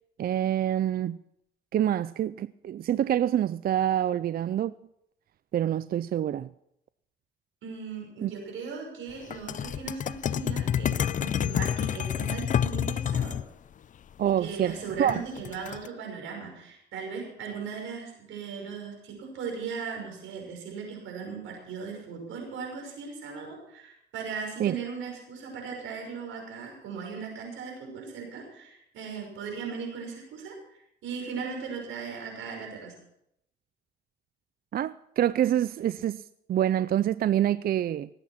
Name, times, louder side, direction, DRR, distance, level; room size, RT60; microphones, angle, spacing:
voice 1, 0.2-1.2 1.7-4.7 5.5-6.5 8.2-8.3 14.2-15.2 24.6-24.7 34.7-36.2 36.5-38.1, right 11 dB, 50° right, 0.4 m, -26 dB
voice 2, 7.6-13.4 14.4-32.9, right 5 dB, 85° right, 5.9 m, -38 dB
sound 1, 9.3-13.4 15.1-15.9, left 9 dB, 40° left, 0.4 m, -28 dB
18.5 x 8.9 x 5.8 m
cardioid pair, 90°, 20 cm